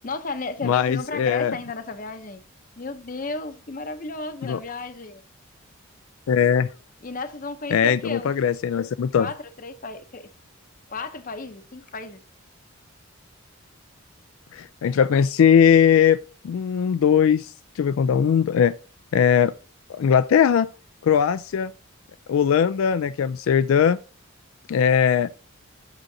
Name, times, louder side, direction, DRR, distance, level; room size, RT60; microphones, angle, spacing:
voice 1, 0.0-2.5 2.8-5.2 7.0-8.3 9.2-10.3 10.9-12.2, left 3 dB, 40° left, 0.7 m, -34 dB
voice 2, 0.6-1.6 4.4-4.6 6.3-6.7 7.7-9.3 14.5-16.2 16.4-18.7 19.1-19.5 19.9-20.7 21.0-21.7 22.3-24.0 24.7-25.3, left 8 dB, 75° left, 0.3 m, -19 dB
9.0 x 7.5 x 2.7 m
head